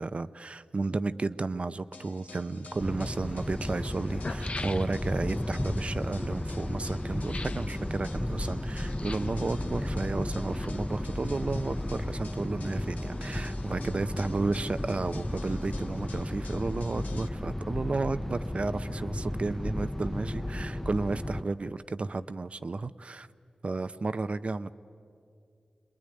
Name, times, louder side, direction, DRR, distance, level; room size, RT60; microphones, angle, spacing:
voice 1, 0.0-23.3 23.6-24.7, right 3 dB, 55° right, 13 dB, 0.7 m, -33 dB
sound 1, 1.9-17.3, left 4 dB, 85° left, 1.2 m, -51 dB
sound 2, 2.7-2.8 3.7-3.8 4.0-5.2 7.2-7.7 8.9-9.4 10.3-11.1 11.3-11.4, left 3 dB, 50° left, 0.7 m, -41 dB
sound 3, 2.8-21.4, left 1 dB, 10° left, 0.6 m, -34 dB
25.0 x 21.0 x 10.0 m, 2.5 s
cardioid pair, 45°, 3 cm